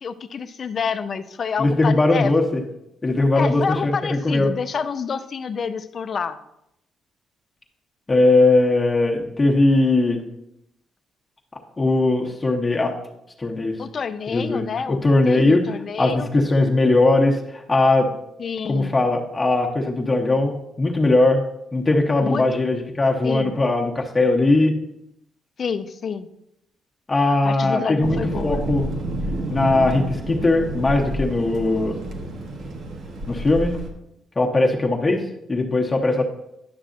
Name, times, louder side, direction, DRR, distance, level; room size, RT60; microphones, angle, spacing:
voice 1, 0.0-2.3 3.3-6.4 13.8-16.3 18.4-18.9 22.2-22.4 23.2-23.6 25.6-26.3 27.3-28.6, left 6 dB, 50° left, 11 dB, 0.5 m, -28 dB
voice 2, 1.6-2.6 3.0-4.5 8.1-10.2 11.8-13.0 13.4-13.7 14.3-14.6 14.9-15.6 16.0-18.1 18.7-21.4 21.7-24.7 27.1-28.9 29.5-32.0 33.3-33.8 34.4-36.2, left 2 dB, 25° left, 0 dB, 0.9 m, -19 dB
Thunder, 28.0-33.9, right 1 dB, 70° right, 1.1 m, -29 dB
10.5 x 6.1 x 2.6 m, 0.82 s
cardioid pair, 90°, 0 cm